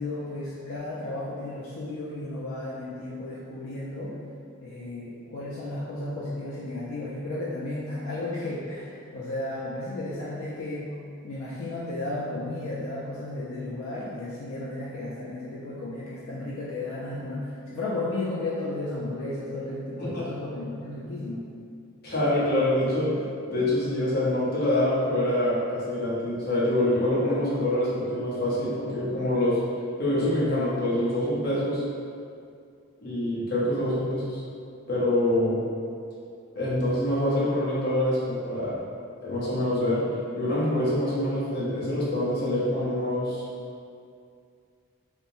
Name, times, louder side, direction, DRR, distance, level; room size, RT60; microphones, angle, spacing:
voice 1, 0.0-4.2 4.6-10.9 11.2-21.5, left 2 dB, 75° left, -6 dB, 0.4 m, -34 dB
voice 2, 22.0-23.1 23.5-29.6 30.0-31.8 33.0-34.4 34.9-35.6 36.5-38.8 39.2-40.1 40.3-43.4, left 1 dB, 45° left, -8 dB, 0.7 m, -25 dB
2.9 x 2.1 x 2.6 m, 2.3 s
head